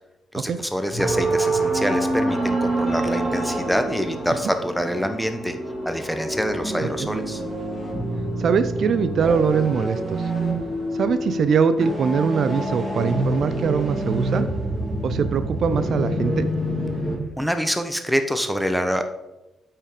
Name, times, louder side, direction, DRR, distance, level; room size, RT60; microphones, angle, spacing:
voice 1, 0.3-5.6 5.8-7.4 17.4-19.1, equal, ahead, 7 dB, 0.9 m, -25 dB
sound 1, 0.9-17.2, right 1 dB, 15° right, 2.4 m, -26 dB
voice 2, 8.4-10.3 10.9-14.5 15.0-16.5, right 6 dB, 60° right, 12 dB, 0.5 m, -22 dB
8.4 x 5.7 x 5.0 m, 0.97 s
cardioid pair, 90°, 0 cm